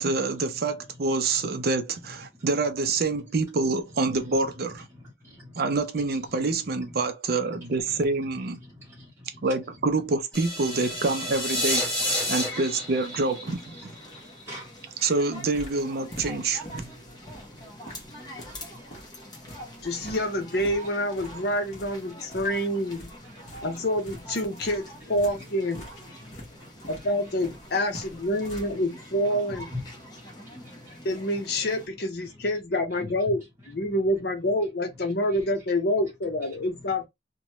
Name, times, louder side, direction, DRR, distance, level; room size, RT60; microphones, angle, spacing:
voice 1, 0.0-4.9 5.6-8.6 9.4-11.9 12.3-13.9 15.0-16.9, right 3 dB, 55° right, 0.5 m, -27 dB
voice 2, 0.5-1.2 1.5-1.7 2.1-2.7 3.0-3.3 3.9-7.0 7.5-10.1 10.6-11.1 11.7-12.5 13.8-15.0 16.7-20.1 21.2-21.5 21.9-22.7 23.2-23.9 25.0-25.5 26.1-27.3 28.3-28.4 29.0-29.1 29.5-33.1 33.6-34.0 35.0-35.5 36.5-37.0, left 1 dB, 15° right, 0.9 m, -47 dB
sound 1, 10.3-14.4, left 1 dB, 5° left, 1.7 m, -30 dB
sound 2, 12.0-31.9, equal, 20° left, 0.9 m, -46 dB
sound 3, 15.4-28.8, equal, 35° left, 1.2 m, -46 dB
voice 3, 19.8-23.1 23.6-25.9 26.9-29.7 31.0-37.0, left 1 dB, 60° left, 0.7 m, -27 dB
2.9 x 2.2 x 2.9 m
head